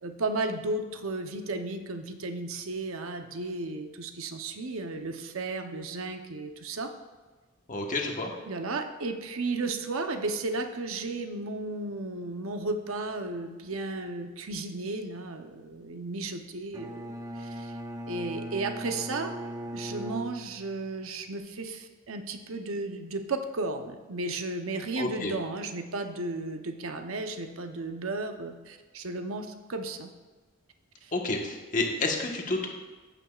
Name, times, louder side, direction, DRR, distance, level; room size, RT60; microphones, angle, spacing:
voice 1, 0.0-6.9 8.5-17.7 18.1-19.3 19.7-30.1 31.0-31.1, right 2 dB, 75° right, 6 dB, 0.8 m, -34 dB
voice 2, 7.7-8.3 25.0-25.3 31.1-32.7, left 3 dB, 40° left, 1 dB, 1.3 m, -29 dB
Bowed string instrument, 16.7-20.9, equal, 15° right, 0.6 m, -39 dB
14.0 x 9.1 x 2.4 m, 1.3 s
head